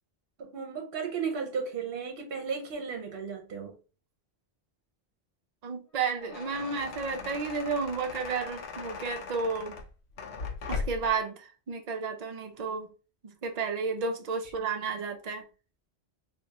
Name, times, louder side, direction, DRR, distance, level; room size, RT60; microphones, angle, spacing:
voice 1, 0.4-3.7 14.6-14.7, right 6 dB, 65° right, 1.0 m, -35 dB
voice 2, 5.6-9.8 10.7-12.9 13.2-15.4, right 4 dB, 45° right, 0.6 m, -32 dB
sound 1, 6.0-11.2, left 5 dB, 85° left, 0.9 m, -39 dB
3.4 x 2.6 x 2.8 m
omnidirectional pair, 1.1 m